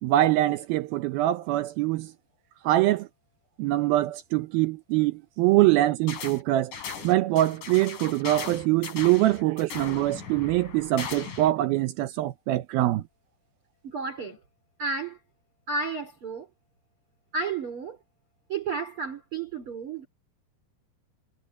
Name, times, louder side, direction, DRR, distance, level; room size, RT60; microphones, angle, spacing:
voice 1, 0.0-2.1 2.6-3.1 3.6-6.8 7.0-13.0, right 15 dB, 85° right, 2.1 m, -24 dB
sound 1, 6.1-6.4 6.7-11.5, left 6 dB, 50° left, 4.6 m, -38 dB
voice 2, 13.8-14.4 14.8-15.2 15.7-16.5 17.3-18.0 18.5-20.1, right 4 dB, 30° right, 3.8 m, -32 dB
omnidirectional pair, 5.1 m